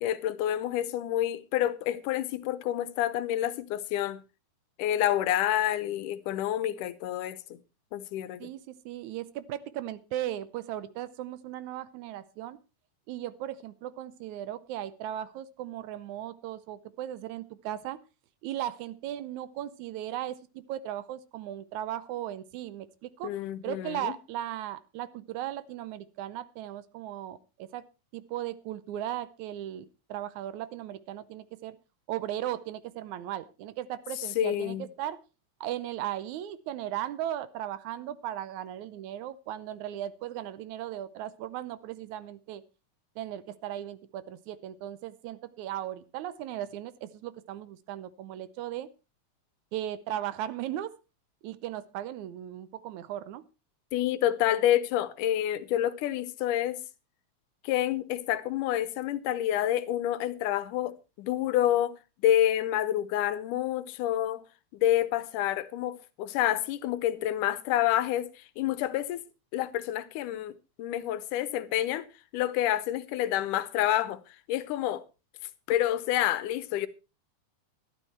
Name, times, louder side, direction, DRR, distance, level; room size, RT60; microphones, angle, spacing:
voice 1, 0.0-4.2 4.8-7.4 7.9-8.5 23.2-24.1 34.2-34.9 53.9-56.8 57.6-64.4 64.8-69.3 69.5-74.2 74.5-75.0 75.7-76.9, left 12 dB, 85° left, 2.3 m, -28 dB
voice 2, 8.4-12.6 13.1-18.0 18.4-23.3 23.6-27.8 28.1-31.8 32.1-35.2 35.6-42.6 43.2-48.9 49.7-50.9 51.4-53.4, right 12 dB, 75° right, 2.0 m, -37 dB
12.5 x 12.0 x 4.3 m
omnidirectional pair, 3.6 m